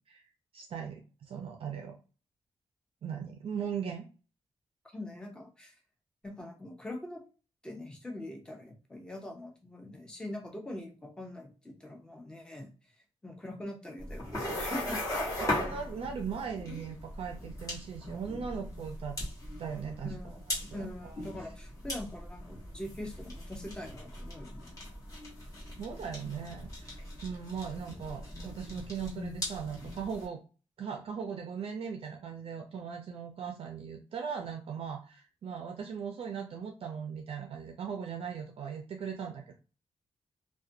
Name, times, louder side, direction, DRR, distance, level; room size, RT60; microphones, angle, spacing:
voice 1, 0.5-2.0 3.0-4.0 15.4-19.2 19.6-20.1 20.7-21.2 25.8-27.0 27.2-30.4 30.8-39.6, right 7 dB, 55° right, 3 dB, 0.4 m, -39 dB
voice 2, 4.9-5.7 6.2-7.2 7.6-13.0 13.2-15.2 20.0-24.9, left 1 dB, 5° left, 1 dB, 0.6 m, -43 dB
sound 1, 14.0-30.2, left 1 dB, 30° left, 1.1 m, -39 dB
2.4 x 2.2 x 2.6 m, 0.34 s
wide cardioid pair, 135°, 11 cm